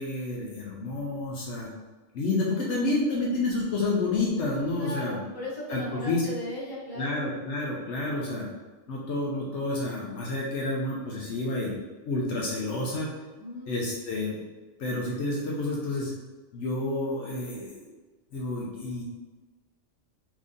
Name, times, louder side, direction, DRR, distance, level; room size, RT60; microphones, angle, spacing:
voice 1, 0.0-1.7 2.1-5.2 5.7-6.2 7.0-8.5 8.9-11.7 12.1-13.1 13.7-14.4 14.8-16.1 16.5-17.9 18.3-19.0, left 2 dB, 70° left, -4 dB, 0.9 m, -29 dB
voice 2, 4.8-7.2 13.4-13.7, left 1 dB, 20° left, -7 dB, 0.9 m, -36 dB
2.9 x 2.6 x 3.6 m, 1.3 s
omnidirectional pair, 1.3 m